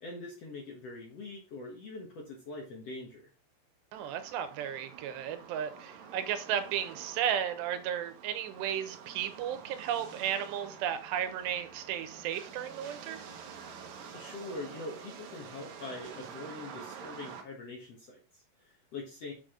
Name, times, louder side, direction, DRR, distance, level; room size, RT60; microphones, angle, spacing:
voice 1, 0.0-3.3 14.1-19.3, left 2 dB, 60° left, 1.8 m, -43 dB
sound 1, 3.9-17.4, right 6 dB, 70° right, 1.7 m, -48 dB
voice 2, 3.9-13.2, right 9 dB, 85° right, 3.1 m, -34 dB
7.3 x 6.4 x 3.7 m
omnidirectional pair, 4.8 m